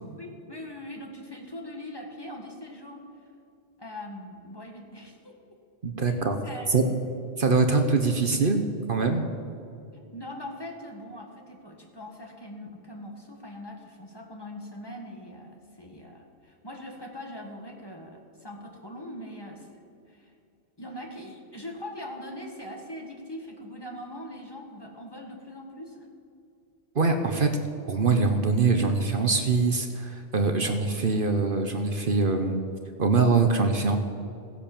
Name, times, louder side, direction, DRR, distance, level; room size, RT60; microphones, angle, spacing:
voice 1, 0.2-3.1 3.8-5.4 6.1-6.8 9.9-20.3 20.8-26.1 30.6-30.8, left 1 dB, 20° left, 2 dB, 1.8 m, -41 dB
voice 2, 5.8-6.4 6.7-6.8 7.4-8.6 8.9-9.3 26.9-27.5 27.9-32.6 33.0-34.0, right 4 dB, 55° right, 6 dB, 1.2 m, -23 dB
16.0 x 10.5 x 7.3 m, 2.6 s
omnidirectional pair, 1.1 m